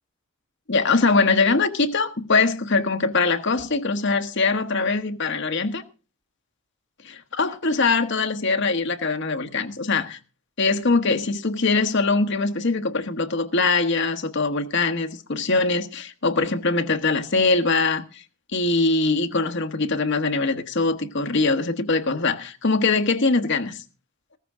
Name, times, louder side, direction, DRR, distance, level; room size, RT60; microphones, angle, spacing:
voice 1, 0.7-5.8 7.1-10.2 10.6-18.2 18.5-23.8, left 3 dB, 55° left, 1.1 m, -22 dB
14.5 x 14.5 x 3.6 m
head